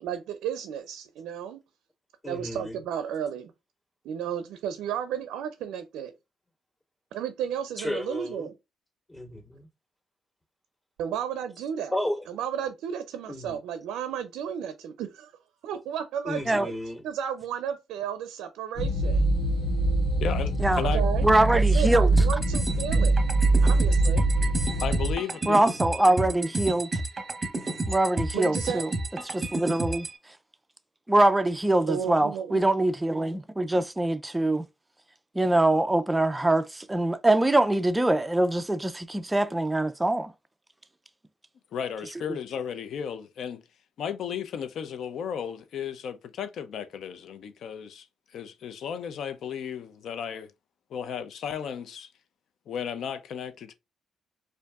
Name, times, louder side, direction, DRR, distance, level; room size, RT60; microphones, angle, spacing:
voice 1, 0.0-1.6 2.3-3.5 4.0-6.1 7.1-8.5 11.0-11.9 12.3-15.3 15.6-16.7 17.0-19.2 20.9-21.2 21.5-23.2 23.6-24.3 28.3-28.8 31.8-32.6, right 8 dB, 90° right, 0.4 m, -33 dB
voice 2, 2.2-2.8 7.8-8.5 9.1-9.7 11.9-12.3 13.3-13.6 16.2-17.0, left 1 dB, 25° left, 2.3 m, -33 dB
sound 1, 18.8-25.1, right 2 dB, 50° left, 1.7 m, -23 dB
voice 3, 20.2-21.0 24.8-25.6 41.7-43.6 44.0-48.1 48.3-50.5 50.9-52.1 52.7-53.7, left 8 dB, 70° left, 0.4 m, -34 dB
voice 4, 21.2-22.1 25.5-27.0 27.9-28.9 29.2-30.1 31.1-34.6 35.4-40.3, right 1 dB, 10° right, 0.3 m, -23 dB
sound 2, 22.2-30.2, right 2 dB, 30° right, 0.9 m, -31 dB
4.5 x 2.5 x 2.3 m
cardioid pair, 90°, 0 cm